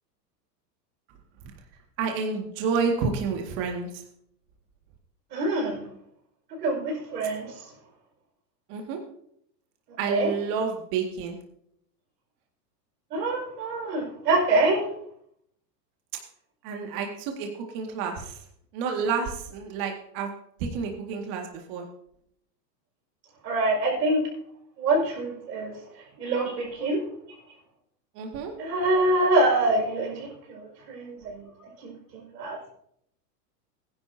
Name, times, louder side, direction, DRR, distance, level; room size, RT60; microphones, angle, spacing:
voice 1, 2.0-4.0 8.7-9.0 10.0-11.4 16.6-18.4 18.7-20.3 20.6-21.9 28.2-28.5, right 5 dB, 45° right, 2 dB, 2.0 m, -29 dB
voice 2, 5.3-5.8 6.6-7.5 10.1-10.3 13.1-14.9 23.4-24.2 24.8-25.7 26.2-27.0 28.6-31.5 31.8-32.6, right 2 dB, 80° right, -1 dB, 5.6 m, -25 dB
17.0 x 10.5 x 2.7 m, 0.70 s
hypercardioid pair, 130°, 48 cm